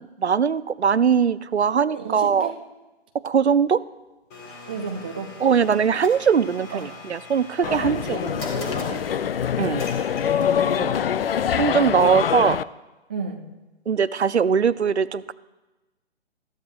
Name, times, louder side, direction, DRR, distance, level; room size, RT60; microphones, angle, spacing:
voice 1, 0.0-2.5 3.1-3.8 5.4-8.2 9.6-9.8 11.6-12.6 13.9-15.3, right 7 dB, 85° right, 17 dB, 0.6 m, -21 dB
voice 2, 1.9-2.6 4.7-5.3 6.7-6.8 7.6-9.2 10.3-11.0 13.1-13.5, right 5 dB, 10° right, 3 dB, 0.4 m, -33 dB
Domestic sounds home sounds, 4.3-10.8, left 3 dB, 25° left, 3.2 m, -41 dB
sound 1, 7.6-12.6, left 8 dB, 60° left, 0.5 m, -24 dB
21.0 x 14.0 x 2.2 m, 1.1 s
figure-of-eight pair, 130°, 32 cm